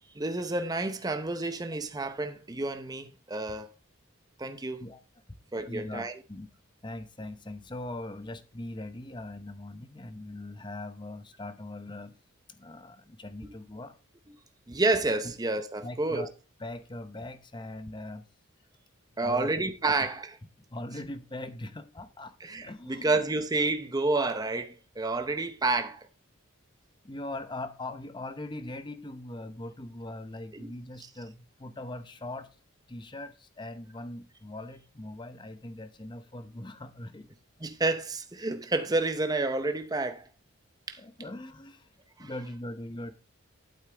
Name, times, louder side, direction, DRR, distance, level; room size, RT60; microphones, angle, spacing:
voice 1, 0.1-3.7 4.4-4.8 5.5-6.1 13.4-13.5 14.7-16.3 19.2-20.4 22.4-26.1 30.5-30.7 37.6-40.3 40.9-41.0 42.2-42.3, right 2 dB, 15° right, 0.7 m, -29 dB
voice 2, 5.6-6.5 6.8-12.2 12.5-14.0 15.8-16.3 16.6-18.3 19.2-19.5 20.7-22.4 22.6-23.1 27.0-32.5 32.9-37.3 41.0-41.9 42.2-43.1, left 2 dB, 20° left, 0.7 m, -41 dB
11.5 x 8.6 x 3.4 m
head